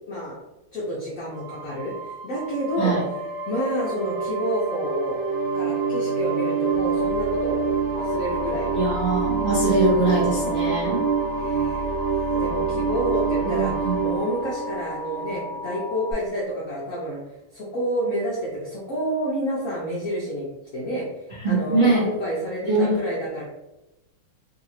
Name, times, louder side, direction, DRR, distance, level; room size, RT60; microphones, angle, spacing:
voice 1, 0.1-0.4 0.7-3.0 3.5-5.2 5.5-7.6 7.9-8.8 11.4-12.0 12.4-13.7 14.0-17.2 17.5-20.5 20.7-21.1 21.4-23.4, equal, 65° left, -6 dB, 0.8 m, -29 dB
sound 1, 1.3-15.8, right 5 dB, 70° right, 1.4 m, -27 dB
Alarm, 7.9-16.1, left 2 dB, 35° left, 0.9 m, -36 dB
voice 2, 8.7-11.0 13.4-14.0 21.4-22.1 22.6-23.0, right 2 dB, 45° right, -10 dB, 0.6 m, -22 dB
3.2 x 2.9 x 2.7 m, 0.97 s
omnidirectional pair, 2.3 m